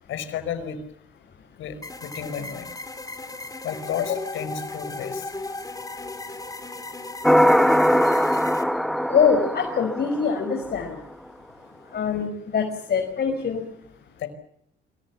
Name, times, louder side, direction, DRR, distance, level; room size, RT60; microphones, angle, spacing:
voice 1, 0.1-0.8 1.6-2.7 3.6-5.3 14.2-14.3, left 8 dB, 80° left, 12 dB, 5.1 m, -31 dB
sound 1, 1.8-8.6, left 2 dB, 20° left, 4.3 m, -36 dB
sound 2, 7.2-10.7, equal, ahead, 1.6 m, -20 dB
voice 2, 8.0-8.4 9.1-11.0 11.9-13.6, left 6 dB, 55° left, 4 dB, 5.7 m, -24 dB
26.5 x 24.0 x 7.3 m, 0.69 s
cardioid pair, 90°, 20 cm